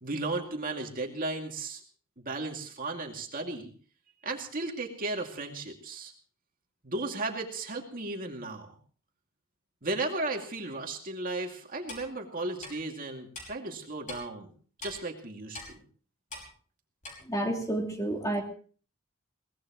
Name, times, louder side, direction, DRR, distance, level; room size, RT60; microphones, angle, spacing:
voice 1, 0.0-1.8 2.2-3.7 4.2-6.1 6.8-8.7 9.8-14.5 14.8-15.8, right 2 dB, 40° right, 2 dB, 2.4 m, -35 dB
Clock, 11.9-12.0 12.6-12.7 13.3-13.5 14.1-14.2 14.8-14.9 15.5-15.7 16.3-16.5 17.0-17.1, left 2 dB, 35° left, 5.4 m, -41 dB
voice 2, 17.2-18.4, right 1 dB, 15° left, 1 dB, 2.7 m, -30 dB
22.5 x 19.0 x 3.1 m, 0.43 s
head